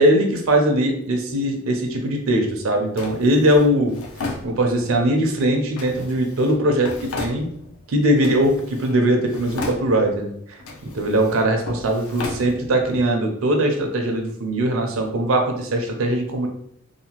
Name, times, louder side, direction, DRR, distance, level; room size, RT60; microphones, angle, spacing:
voice 1, 0.0-3.9 4.4-7.5 7.9-16.5, right 1 dB, 65° right, 3 dB, 0.5 m, -20 dB
Drawer open or close, 3.0-5.0 5.8-7.9 8.2-9.0 9.3-10.2 10.6-13.0, left 3 dB, 65° left, 0.5 m, -35 dB
2.8 x 2.3 x 2.8 m, 0.70 s
head